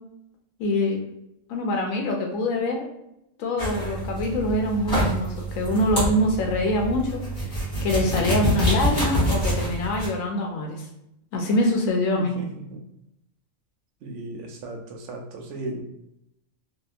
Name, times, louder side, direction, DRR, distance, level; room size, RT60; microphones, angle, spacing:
voice 1, 0.6-1.0 1.5-2.9 3.4-7.2 7.5-10.8 11.3-12.4, left 1 dB, 90° left, 1 dB, 1.0 m, -24 dB
sound 1, 3.6-10.1, equal, 40° left, 1.2 m, -26 dB
voice 2, 12.2-12.8 14.0-15.8, right 2 dB, 70° right, 2 dB, 0.9 m, -36 dB
2.8 x 2.3 x 2.3 m, 0.82 s
omnidirectional pair, 1.4 m